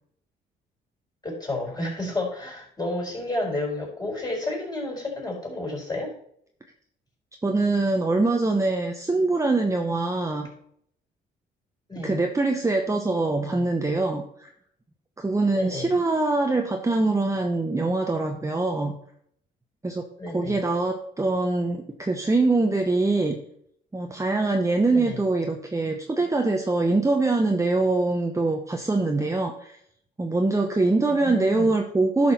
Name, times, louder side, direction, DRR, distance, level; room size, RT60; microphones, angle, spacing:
voice 1, 1.2-6.1 11.9-12.2 13.4-13.7 15.5-15.9 20.2-20.6 24.9-25.2 31.2-31.7, left 2 dB, 20° left, -1 dB, 4.4 m, -31 dB
voice 2, 7.4-10.5 12.0-14.5 15.2-18.9 19.8-20.1 20.3-23.4 23.9-29.8 30.2-32.3, right 2 dB, 15° right, 3 dB, 0.9 m, -23 dB
11.0 x 6.1 x 4.2 m, 0.67 s
cardioid pair, 90°, 20 cm